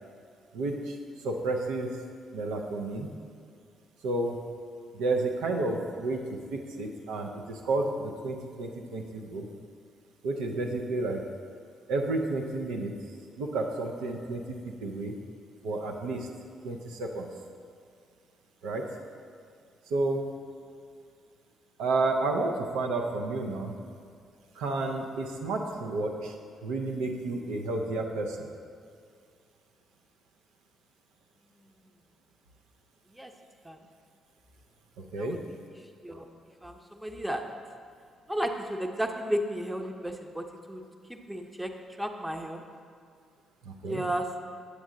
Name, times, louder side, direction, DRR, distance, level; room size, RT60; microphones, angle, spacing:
voice 1, 0.5-1.0 1.2-2.0 2.3-3.2 4.0-4.5 4.9-9.5 10.2-11.3 11.9-13.0 13.4-15.2 15.6-16.3 16.6-17.3 18.6-18.8 19.9-20.3 21.8-23.8 24.5-26.3 26.6-28.5 35.1-35.5 43.6-44.0, right 2 dB, 70° right, 1 dB, 0.6 m, -31 dB
voice 2, 35.2-35.6 36.0-36.3 36.6-37.4 38.3-40.8 41.1-41.7 42.0-42.6 43.9-44.3, right 1 dB, 5° right, 5 dB, 0.8 m, -33 dB
8.4 x 7.9 x 3.8 m, 2.3 s
figure-of-eight pair, 40°, 0 cm